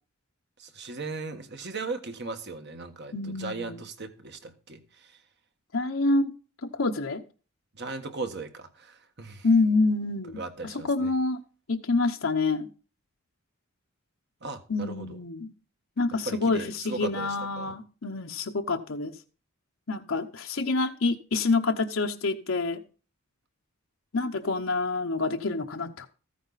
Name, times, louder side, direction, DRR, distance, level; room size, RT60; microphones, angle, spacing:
voice 1, 0.6-5.2 7.7-9.5 10.3-11.1 14.4-15.2 16.2-17.7, right 3 dB, 55° right, 1.5 m, -37 dB
voice 2, 3.1-3.8 5.7-6.3 6.6-7.2 9.4-11.4 11.7-12.7 14.7-15.5 16.0-19.2 19.9-22.8 24.1-26.1, left 3 dB, 70° left, 0.9 m, -27 dB
14.5 x 9.2 x 4.1 m
head